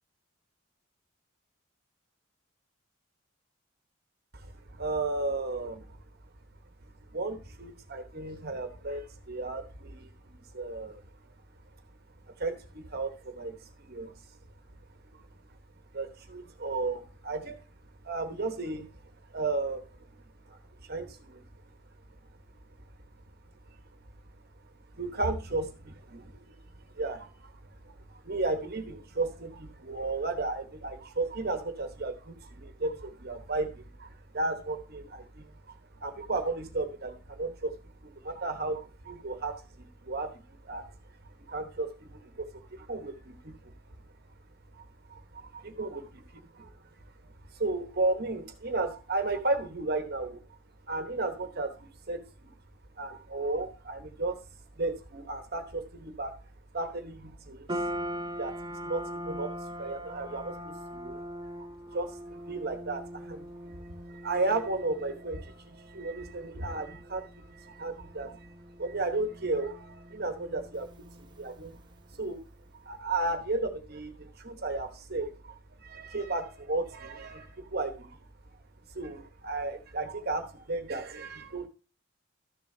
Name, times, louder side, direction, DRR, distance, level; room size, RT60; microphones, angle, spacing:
voice 1, 4.3-6.0 7.1-11.0 12.4-14.1 15.1-15.2 15.9-17.6 18.0-18.9 19.3-20.6 20.9-21.4 24.9-26.5 26.9-27.5 27.8-37.7 38.0-40.9 41.5-43.7 44.7-46.1 46.6-46.7 47.5-50.4 50.9-52.5 53.0-54.4 54.8-56.3 56.7-57.8 58.4-61.2 61.9-71.8 72.1-72.4 72.8-78.2 78.9-81.7, right 2 dB, 50° right, 7 dB, 1.1 m, -34 dB
sound 1, 57.7-72.1, equal, 20° right, 0.6 m, -42 dB
13.0 x 6.9 x 2.7 m, 0.33 s
head